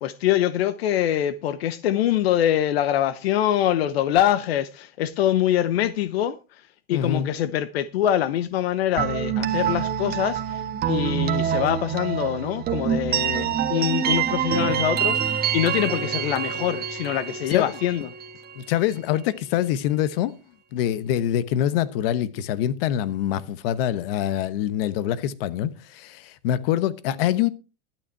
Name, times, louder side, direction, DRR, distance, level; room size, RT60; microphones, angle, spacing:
voice 1, 0.0-6.4 6.9-10.6 10.9-18.1, left 11 dB, 90° left, 0.9 m, -24 dB
voice 2, 6.9-7.3 17.5-17.7 18.6-20.3 20.7-27.5, left 11 dB, 70° left, 1.1 m, -25 dB
sound 1, 9.0-18.7, right 9 dB, 30° right, 1.6 m, -26 dB
12.0 x 8.9 x 4.6 m
supercardioid pair, 130°, 30 cm